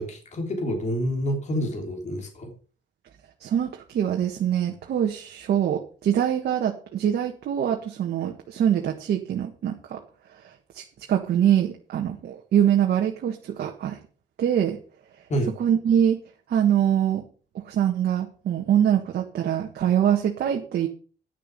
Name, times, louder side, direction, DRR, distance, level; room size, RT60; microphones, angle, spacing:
voice 1, 0.0-2.5 15.3-15.5, equal, 40° left, 3 dB, 3.2 m, -28 dB
voice 2, 3.4-10.0 10.4-14.0 14.4-14.8 15.6-16.2 16.5-17.2 17.6-20.9, right 9 dB, 60° right, 2 dB, 1.6 m, -24 dB
10.5 x 6.8 x 6.8 m, 0.40 s
cardioid pair, 125°, 19 cm